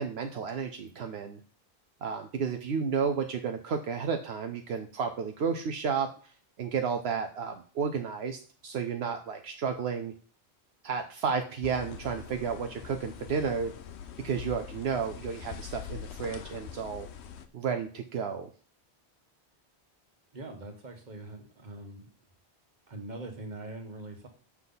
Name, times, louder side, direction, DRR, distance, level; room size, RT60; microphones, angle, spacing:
voice 1, 0.0-1.4 2.0-6.1 6.6-10.1 10.8-13.7 14.2-17.1 17.5-18.5, right 6 dB, 75° right, 6 dB, 0.9 m, -32 dB
sound 1, 11.6-17.5, left 8 dB, 80° left, 1.0 m, -43 dB
voice 2, 20.3-22.1 22.9-24.3, right 2 dB, 45° right, 5 dB, 1.4 m, -42 dB
7.3 x 5.8 x 4.0 m, 0.42 s
omnidirectional pair, 1.1 m